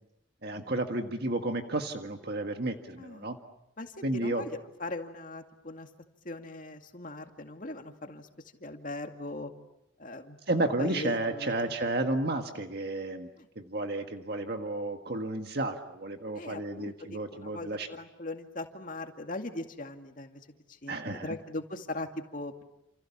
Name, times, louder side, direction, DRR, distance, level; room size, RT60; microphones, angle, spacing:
voice 1, 0.4-3.4 4.0-4.4 10.5-13.3 13.5-17.9 20.9-21.4, right 2 dB, 50° right, 5 dB, 1.7 m, -32 dB
voice 2, 3.8-5.9 6.2-8.3 8.6-9.5 10.0-11.5 13.4-13.5 16.3-20.4 20.7-22.6, left 2 dB, 40° left, 5 dB, 2.3 m, -40 dB
29.5 x 28.5 x 7.2 m, 0.81 s
head